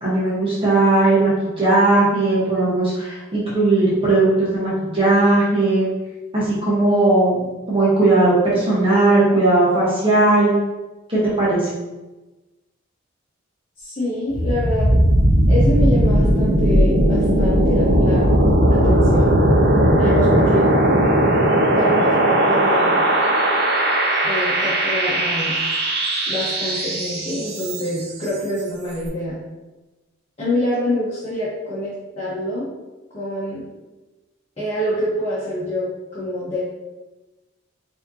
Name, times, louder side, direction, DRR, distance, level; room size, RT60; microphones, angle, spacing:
voice 1, 0.0-5.9 6.3-10.5 11.1-11.7, right 2 dB, 25° right, -8 dB, 1.1 m, -17 dB
voice 2, 13.8-15.0 15.5-18.3 18.7-19.4 20.0-20.7 21.7-23.0 24.2-25.6 26.3-29.4 30.4-32.7 33.1-33.6 34.6-36.6, left 1 dB, 30° left, -10 dB, 1.1 m, -26 dB
sound 1, 14.3-28.1, right 1 dB, 55° right, 0.6 m, -17 dB
4.9 x 2.9 x 2.7 m, 1.1 s
head